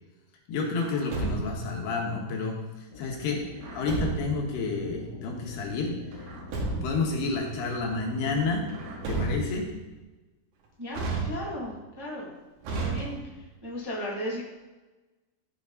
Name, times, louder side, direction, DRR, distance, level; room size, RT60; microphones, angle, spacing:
voice 1, 0.5-6.3 6.8-8.7 9.1-9.7, left 3 dB, 80° left, 0 dB, 3.6 m, -30 dB
Truck, 0.8-1.8 3.6-4.5 6.1-7.1 8.7-9.7 10.9-11.8 12.6-13.5, right 3 dB, 80° right, 3.9 m, -32 dB
sound 1, 2.9-9.3, left 4 dB, 65° left, 2.5 m, -44 dB
voice 2, 10.8-12.3 12.8-13.2 13.6-14.5, equal, 10° right, -5 dB, 1.0 m, -35 dB
15.0 x 6.4 x 4.0 m, 1.2 s
omnidirectional pair, 4.6 m